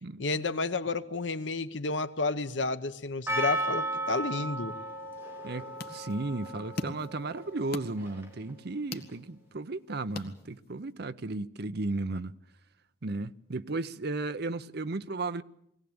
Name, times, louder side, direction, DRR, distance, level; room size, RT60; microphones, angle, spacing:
voice 1, 0.2-4.7, left 3 dB, 85° left, 1.1 m, -31 dB
Percussion, 3.3-8.5, right 1 dB, 15° right, 3.0 m, -35 dB
sound 1, 5.3-10.9, left 2 dB, 60° left, 1.8 m, -44 dB
voice 2, 5.4-12.3 13.0-15.4, right 2 dB, 60° right, 0.8 m, -34 dB
22.0 x 17.5 x 8.8 m
head